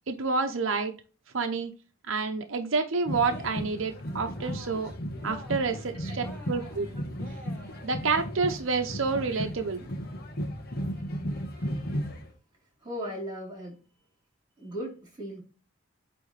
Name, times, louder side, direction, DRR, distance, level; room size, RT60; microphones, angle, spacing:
voice 1, 0.1-0.9 1.3-1.7 2.1-4.9 5.2-6.9 7.8-9.9, right 4 dB, 85° right, 0.8 m, -29 dB
sound 1, 3.1-12.3, equal, 50° left, 1.3 m, -35 dB
Cheering, 3.2-3.9 4.2-4.9 5.2-5.8 6.2-8.0, left 2 dB, 10° left, 1.9 m, -49 dB
voice 2, 12.8-13.8 14.6-15.4, equal, 25° right, 3.8 m, -37 dB
8.6 x 3.4 x 3.3 m
head